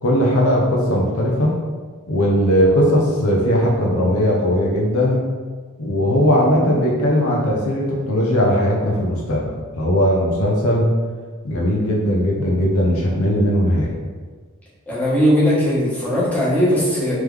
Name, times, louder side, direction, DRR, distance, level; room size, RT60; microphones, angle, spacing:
voice 1, 0.0-1.5 2.1-5.2 5.8-10.9 11.4-13.9, equal, 75° left, -3 dB, 0.7 m, -18 dB
voice 2, 14.9-17.2, equal, 5° left, -10 dB, 1.4 m, -18 dB
3.6 x 3.1 x 3.3 m, 1.5 s
head